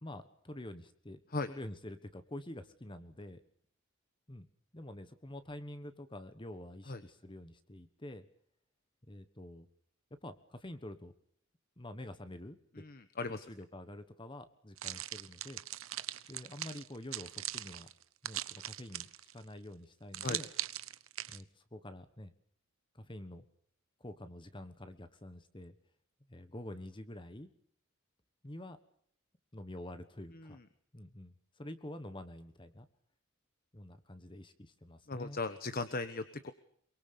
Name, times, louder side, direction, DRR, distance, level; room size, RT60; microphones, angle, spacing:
voice 1, 0.0-1.2 1.5-3.4 4.3-4.5 4.7-8.3 9.1-9.7 10.2-11.1 11.8-12.8 13.3-15.6 16.3-17.9 18.2-20.5 21.3-22.3 22.9-23.5 24.0-25.7 26.3-27.5 28.4-28.8 29.5-30.6 30.9-32.9 33.7-35.4, left 1 dB, 25° left, 10 dB, 1.3 m, -47 dB
voice 2, 12.8-13.4 20.2-20.4 30.4-30.5 35.1-36.5, left 3 dB, 45° left, 11 dB, 1.2 m, -37 dB
sound 1, 14.8-19.4 20.1-21.4, right 14 dB, 80° right, 1.0 m, -40 dB
23.5 x 23.0 x 6.9 m, 0.65 s
head